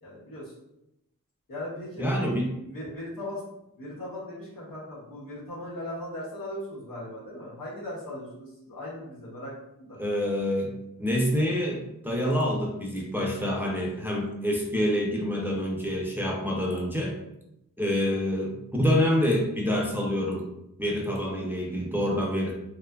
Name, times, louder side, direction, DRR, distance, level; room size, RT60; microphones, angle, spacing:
voice 1, 0.0-0.5 1.5-3.4 3.8-10.0 18.1-18.2, left 1 dB, 90° left, -7 dB, 1.1 m, -38 dB
voice 2, 2.0-2.5 10.0-17.2 17.8-20.5 20.8-22.5, equal, 5° right, -2 dB, 0.5 m, -27 dB
2.6 x 2.4 x 2.2 m, 0.85 s
wide cardioid pair, 80°, 33 cm